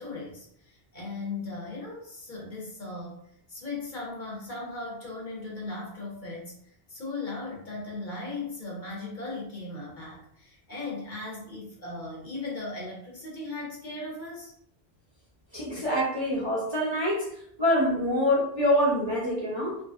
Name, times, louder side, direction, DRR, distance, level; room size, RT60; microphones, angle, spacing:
voice 1, 0.0-3.2 3.5-14.5, left 3 dB, 50° left, -4 dB, 0.9 m, -37 dB
voice 2, 15.5-17.3 17.6-19.8, left 1 dB, 30° right, -7 dB, 0.6 m, -25 dB
2.7 x 2.7 x 2.4 m, 0.68 s
omnidirectional pair, 1.1 m